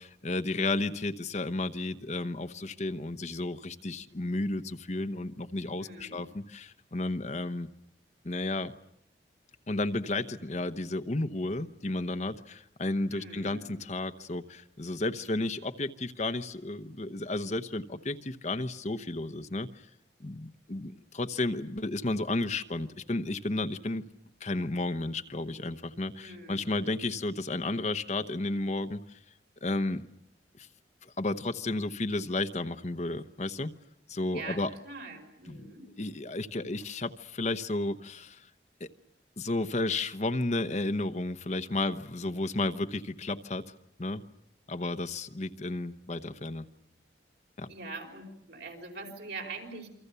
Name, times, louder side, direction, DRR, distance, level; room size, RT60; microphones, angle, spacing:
voice 1, 0.0-7.7 8.2-8.7 9.7-19.7 20.2-24.0 24.4-29.2 29.6-30.0 30.6-30.7 31.0-33.7 34.1-34.7 35.5-35.7 36.0-38.5 38.8-38.9 39.4-43.7 44.0-44.2 44.7-46.7 47.6-47.7, left 2 dB, 40° left, 10 dB, 0.9 m, -32 dB
voice 2, 5.8-6.2 13.1-13.7 26.2-27.1 34.3-35.9 47.7-49.9, right 3 dB, 70° right, 3 dB, 5.4 m, -43 dB
28.5 x 24.5 x 6.9 m, 0.76 s
head